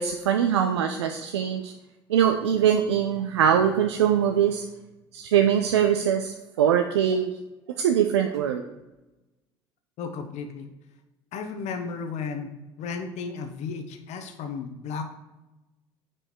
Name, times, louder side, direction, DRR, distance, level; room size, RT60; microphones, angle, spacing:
voice 1, 0.0-1.7 2.1-4.6 5.1-7.3 7.7-8.6, right 9 dB, 80° right, 5 dB, 0.5 m, -22 dB
voice 2, 10.0-10.7 11.3-12.5 12.8-15.0, left 5 dB, 55° left, 6 dB, 1.0 m, -34 dB
7.5 x 5.0 x 4.5 m, 1.0 s
hypercardioid pair, 60°, 14 cm